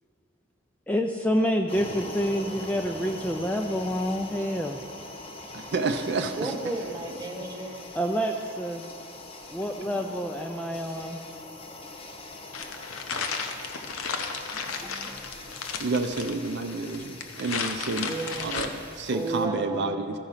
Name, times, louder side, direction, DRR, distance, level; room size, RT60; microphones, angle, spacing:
voice 1, 0.9-4.8 8.0-8.9 9.5-11.2 14.8-15.3, equal, 5° left, 3 dB, 0.3 m, -28 dB
sound 1, 1.7-19.5, left 2 dB, 30° left, 0.8 m, -43 dB
voice 2, 5.5-6.6 15.8-18.1 18.4-20.1, right 3 dB, 55° right, 6 dB, 0.5 m, -29 dB
voice 3, 6.4-8.0 9.8-9.9 18.0-18.7 19.1-20.0, right 2 dB, 20° right, 1 dB, 1.1 m, -33 dB
sound 2, 12.5-18.7, left 5 dB, 90° left, 0.8 m, -34 dB
14.5 x 4.9 x 5.6 m, 2.7 s
head